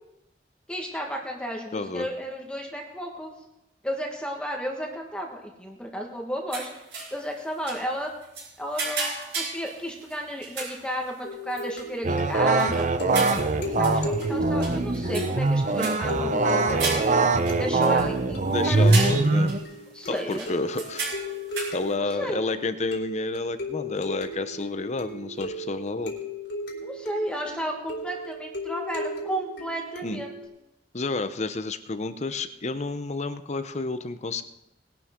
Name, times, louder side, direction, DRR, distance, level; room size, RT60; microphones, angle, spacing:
voice 1, 0.7-3.3 3.8-6.7 7.1-8.1 8.6-12.8 13.3-13.5 13.8-17.0 17.6-19.1 19.9-20.5 22.0-22.4 26.8-30.3, equal, 5° left, 1 dB, 1.5 m, -33 dB
voice 2, 1.7-2.1 18.5-19.5 20.1-21.1 21.7-26.2 30.0-30.2 30.9-34.4, left 3 dB, 40° left, 11 dB, 0.7 m, -30 dB
sound 1, 6.5-7.2 7.7-7.8 8.2-10.2 10.4-10.9 11.5-11.8 12.3-14.3 14.6-15.5 15.8-16.1 16.6-18.1 18.6-18.7 18.9-19.7 20.2-21.9, right 3 dB, 80° right, 5.9 m, -34 dB
sound 2, 11.2-30.4, equal, 75° left, 3.2 m, -36 dB
sound 3, 12.0-19.6, right 3 dB, 45° right, 0.7 m, -23 dB
20.0 x 11.5 x 3.7 m, 0.91 s
head